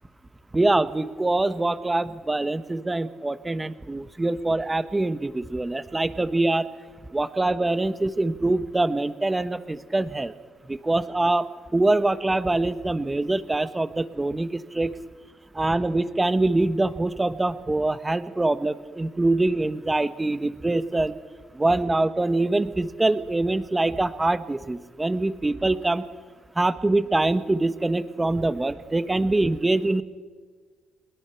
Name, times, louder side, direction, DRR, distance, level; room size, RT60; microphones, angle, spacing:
voice 1, 0.5-6.7 7.1-10.3 10.7-11.5 11.7-14.9 15.5-21.1 21.5-26.0 26.6-30.0, right 2 dB, 15° right, 13 dB, 1.1 m, -24 dB
21.5 x 21.0 x 5.9 m, 1.5 s
cardioid pair, 90°, 0 cm